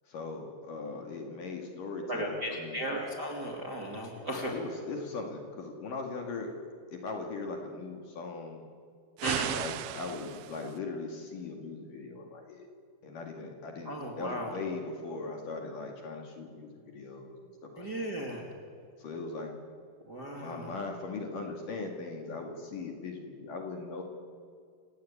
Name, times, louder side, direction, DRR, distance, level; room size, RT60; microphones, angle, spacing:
voice 1, 0.1-2.8 4.1-6.6 6.9-8.6 9.5-12.7 13.0-18.1 19.0-19.5 20.4-24.0, left 3 dB, 50° left, 2 dB, 3.3 m, -39 dB
voice 2, 2.1-4.5 9.2-9.5 13.8-14.5 17.8-18.5 20.1-20.7, equal, 30° right, 0 dB, 2.4 m, -35 dB
sound 1, 9.2-10.8, right 14 dB, 90° right, 3.2 m, -36 dB
28.0 x 18.0 x 8.6 m, 2.2 s
omnidirectional pair, 5.3 m